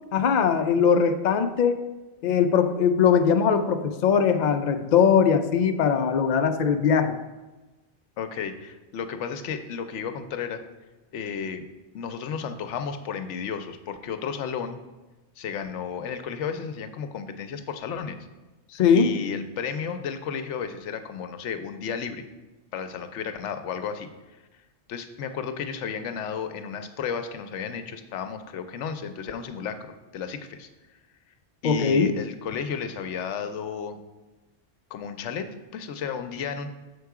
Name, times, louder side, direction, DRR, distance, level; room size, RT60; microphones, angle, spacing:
voice 1, 0.1-1.8 2.2-7.1 18.7-19.1 31.6-32.1, left 7 dB, 60° left, 7 dB, 0.5 m, -21 dB
voice 2, 8.2-10.6 11.1-11.6 11.9-14.8 15.4-18.2 18.9-22.2 22.7-24.1 24.9-30.7 31.6-34.0 34.9-36.7, left 6 dB, 75° left, 9 dB, 0.9 m, -33 dB
6.7 x 4.6 x 4.7 m, 1.1 s
omnidirectional pair, 1.2 m